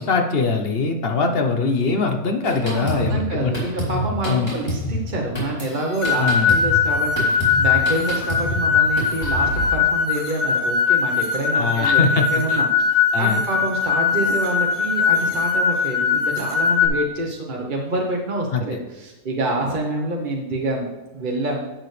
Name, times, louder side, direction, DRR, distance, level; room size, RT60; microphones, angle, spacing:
voice 1, 0.0-3.5 4.2-4.5 6.2-6.5 11.5-12.6 13.1-13.4 18.5-18.6, left 4 dB, 45° left, 4 dB, 0.9 m, -22 dB
Drum kit, 2.4-9.7, equal, 15° left, 3.5 m, -28 dB
voice 2, 2.6-12.0 12.3-21.8, right 2 dB, 35° right, -1 dB, 1.1 m, -27 dB
sound 1, 6.0-16.9, left 6 dB, 65° left, 2.1 m, -20 dB
11.0 x 7.7 x 3.3 m, 1.1 s
omnidirectional pair, 1.6 m